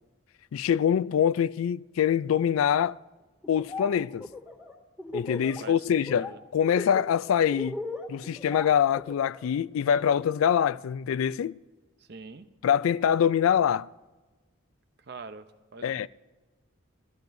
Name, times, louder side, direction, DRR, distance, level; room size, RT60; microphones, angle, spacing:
voice 1, 0.5-3.0 3.5-4.3 5.1-7.8 8.1-11.6 12.6-13.9 15.8-16.1, left 8 dB, 80° left, 0.3 m, -24 dB
Laughter, 3.4-3.9 4.2-5.6 5.9-6.3 6.6-9.5, left 3 dB, ahead, 2.2 m, -37 dB
voice 2, 5.6-6.4 12.1-12.5 15.1-15.4 15.7-16.1, right 3 dB, 50° right, 0.6 m, -44 dB
21.0 x 14.5 x 2.6 m
head